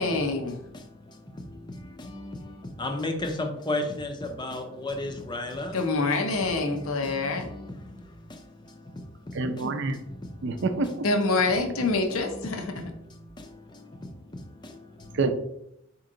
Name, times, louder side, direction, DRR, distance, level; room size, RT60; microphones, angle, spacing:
voice 1, 0.0-0.6 5.7-7.5 11.0-12.9, left 3 dB, 90° left, 0.7 m, -26 dB
voice 2, 0.7-5.8 6.5-9.2 9.6-9.7 9.9-10.6 12.1-15.2, left 2 dB, 20° left, 0.5 m, -36 dB
voice 3, 9.3-10.0 10.4-11.1 15.1-15.3, right 3 dB, 60° right, 0.5 m, -27 dB
4.4 x 3.0 x 3.7 m
head